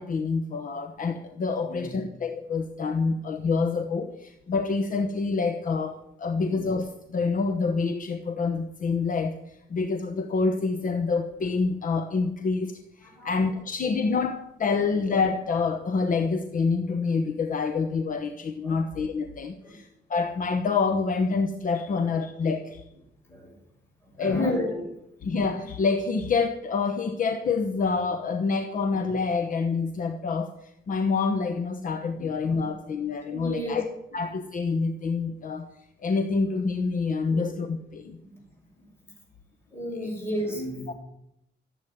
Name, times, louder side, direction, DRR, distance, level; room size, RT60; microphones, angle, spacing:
voice 1, 0.0-22.8 24.2-24.5 25.2-33.8 34.1-35.7 36.0-38.2 40.0-40.1 40.9-41.0, left 4 dB, 45° left, 7 dB, 1.0 m, -27 dB
voice 2, 1.6-2.0 3.0-3.1 6.3-6.6 13.0-13.6 18.6-18.8 19.6-19.8 23.3-23.6 24.1-24.9 32.1-32.7 33.3-33.8 34.1-34.2 37.2-37.4 38.2-38.4 38.8-38.9 39.7-40.9, equal, 10° left, -1 dB, 6.2 m, -33 dB
14.5 x 8.4 x 9.4 m, 0.81 s
cardioid pair, 145°, 19 cm